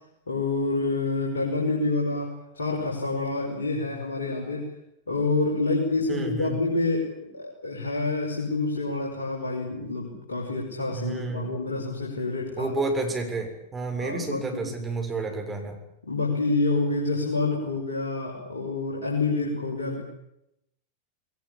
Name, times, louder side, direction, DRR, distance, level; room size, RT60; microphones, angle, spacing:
voice 1, 0.3-4.7 5.1-12.7 14.0-14.7 16.0-20.0, left 3 dB, 70° left, -2 dB, 5.5 m, -27 dB
voice 2, 6.1-6.6 10.9-11.6 12.6-15.8, right 3 dB, 15° right, 3 dB, 7.0 m, -30 dB
21.0 x 19.5 x 10.0 m, 0.81 s
figure-of-eight pair, 90°, 0 cm